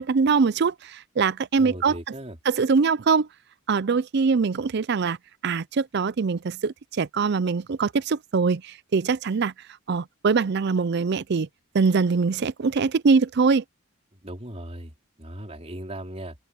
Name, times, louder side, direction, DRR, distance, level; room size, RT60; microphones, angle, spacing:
voice 1, 0.0-2.0 2.5-3.3 3.7-5.2 5.4-9.5 9.9-11.5 11.7-13.6, right 5 dB, 50° right, 0.4 m, -23 dB
voice 2, 1.5-2.4 14.1-16.3, right 1 dB, 30° right, 4.5 m, -38 dB
head